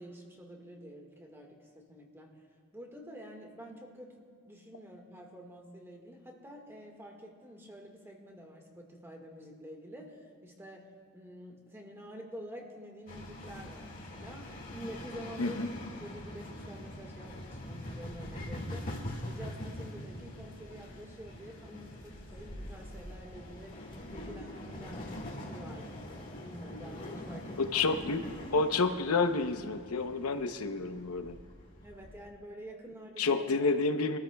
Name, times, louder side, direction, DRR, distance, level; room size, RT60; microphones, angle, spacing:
voice 1, 0.0-2.3 2.7-10.9 11.1-15.6 16.0-18.9 19.2-27.8 31.8-33.5, equal, 10° right, 1 dB, 1.7 m, -48 dB
sound 1, 13.1-32.3, left 1 dB, 40° left, 2.0 m, -44 dB
voice 2, 15.4-15.7 27.6-31.4 33.2-34.2, left 3 dB, 80° left, 8 dB, 0.8 m, -29 dB
24.0 x 13.5 x 2.3 m, 2.1 s
head